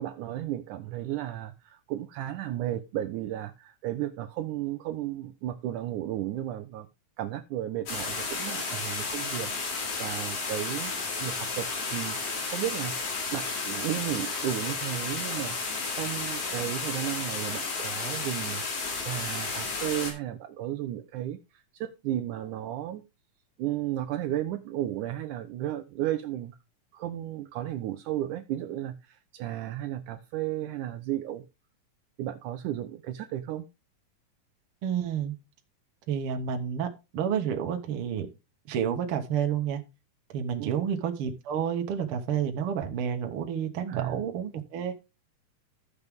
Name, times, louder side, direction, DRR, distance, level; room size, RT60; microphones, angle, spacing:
voice 1, 0.0-6.9 7.2-10.9 11.2-23.0 23.6-26.6 26.9-31.5 32.2-33.7 40.6-40.8 43.9-44.2, right 13 dB, 75° right, 2.0 m, -34 dB
sound 1, 7.9-20.1, left 4 dB, 90° left, 4.7 m, -32 dB
voice 2, 34.8-35.3 36.1-38.3 38.7-39.8 40.3-44.9, right 8 dB, 55° right, 1.7 m, -30 dB
13.5 x 6.7 x 3.5 m
omnidirectional pair, 3.9 m